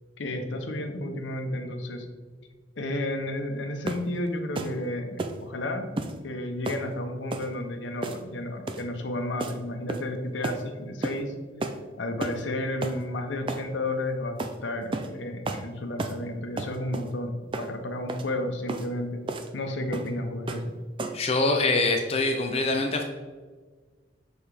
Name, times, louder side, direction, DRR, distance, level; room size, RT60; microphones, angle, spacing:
voice 1, 0.2-2.1 2.8-5.9 6.2-11.3 12.0-19.2 19.5-20.7, left 1 dB, 85° left, 5 dB, 0.8 m, -32 dB
sound 1, 3.9-4.1 4.6-4.8 5.2-5.4 6.0-6.2 6.7-6.9 7.3-7.5 8.0-8.3 8.7-8.9 9.4-9.6 9.9-10.2 10.4-10.6 11.0-11.2 11.6-11.8 12.2-12.4 12.8-13.0 13.5-13.7 14.4-14.6 14.9-15.1 15.5-15.7 16.0-16.2 16.6-17.1 17.5-17.7 18.1-18.3 18.7-18.9 19.3-19.5 19.9-20.1 20.5-20.7 21.0-21.3, right 2 dB, 30° right, 0.3 m, -32 dB
voice 2, 21.1-23.0, left 2 dB, 35° left, 3 dB, 0.5 m, -24 dB
6.7 x 4.2 x 3.4 m, 1.4 s
head